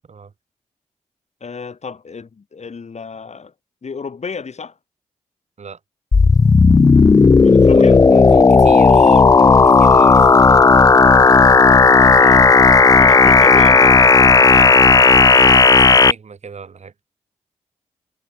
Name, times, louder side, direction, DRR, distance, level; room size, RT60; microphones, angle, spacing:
voice 1, 1.4-3.5 3.8-4.7 7.4-8.0 12.0-12.6 13.0-14.8, left 5 dB, 55° left, 3.8 m, -32 dB
sound 1, 6.1-16.1, left 4 dB, 25° left, 0.4 m, -10 dB
voice 2, 7.6-10.3 10.6-10.8 14.5-14.7 14.9-16.9, right 5 dB, 55° right, 2.2 m, -36 dB
supercardioid pair, 40°, 13 cm